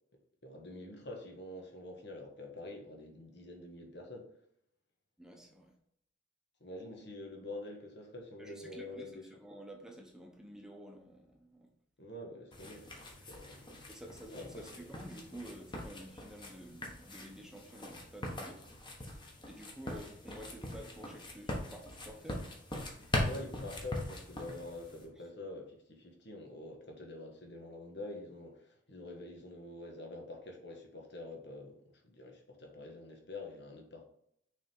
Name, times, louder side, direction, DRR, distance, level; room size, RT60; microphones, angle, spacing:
voice 1, 0.4-4.3 6.6-9.3 12.0-13.7 14.3-14.9 19.8-20.0 23.2-34.0, left 2 dB, 65° left, 2 dB, 1.4 m, -46 dB
voice 2, 5.2-5.7 8.4-11.7 13.9-18.7 19.4-22.5, right 1 dB, 5° right, 1 dB, 0.9 m, -50 dB
sound 1, 12.5-25.0, left 1 dB, 25° left, 1.2 m, -41 dB
6.3 x 3.6 x 4.4 m, 0.71 s
head